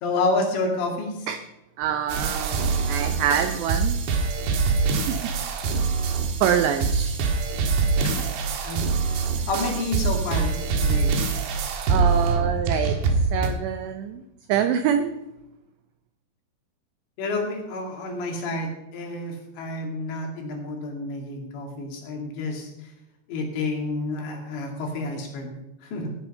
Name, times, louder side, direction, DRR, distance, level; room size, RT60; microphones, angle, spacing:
voice 1, 0.0-1.3 8.0-8.2 8.6-9.2 9.5-11.1 17.2-22.9 23.3-26.2, left 2 dB, 65° left, 1 dB, 4.4 m, -29 dB
voice 2, 1.8-4.0 5.1-5.2 6.4-7.2 11.9-13.0 13.3-14.2 14.5-15.1, right 8 dB, 80° right, 7 dB, 2.5 m, -25 dB
sound 1, 2.1-13.5, right 4 dB, 65° right, 3.2 m, -24 dB
17.0 x 9.5 x 5.5 m, 0.89 s
omnidirectional pair, 5.9 m